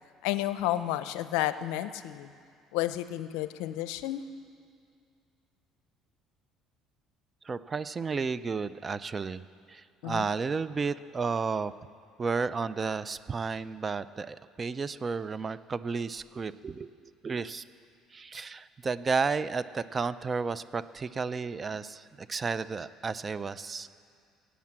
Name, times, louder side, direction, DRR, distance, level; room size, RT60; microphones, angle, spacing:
voice 1, 0.2-2.3 2.7-4.2 10.0-10.3, left 14 dB, 85° left, 13 dB, 0.5 m, -31 dB
voice 2, 7.4-9.4 9.7-11.7 12.2-17.6 18.1-23.9, right 4 dB, 30° right, 16 dB, 0.4 m, -32 dB
16.5 x 8.3 x 7.5 m, 2.3 s
supercardioid pair, 85°, 0 cm